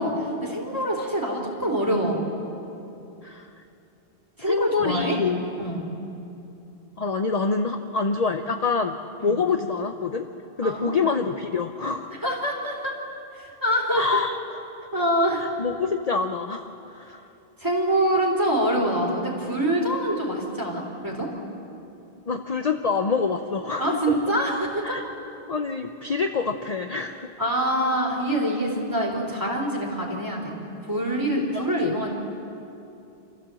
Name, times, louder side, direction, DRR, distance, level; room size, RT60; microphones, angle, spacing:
voice 1, 0.0-2.2 4.4-5.2 5.6-5.8 9.2-9.4 10.6-11.1 12.2-12.9 13.3-14.0 14.9-15.5 17.6-21.3 23.8-25.0 27.4-30.6 30.9-32.1, right 1 dB, 20° right, -1 dB, 3.7 m, -25 dB
voice 2, 4.4-5.4 7.0-9.0 9.2-10.3 10.6-12.1 13.9-14.4 15.4-17.3 22.3-24.0 24.8-25.0 25.5-27.3 31.5-32.0, left 4 dB, 40° left, 6 dB, 0.8 m, -26 dB
28.0 x 14.5 x 7.7 m, 2.8 s
omnidirectional pair, 1.1 m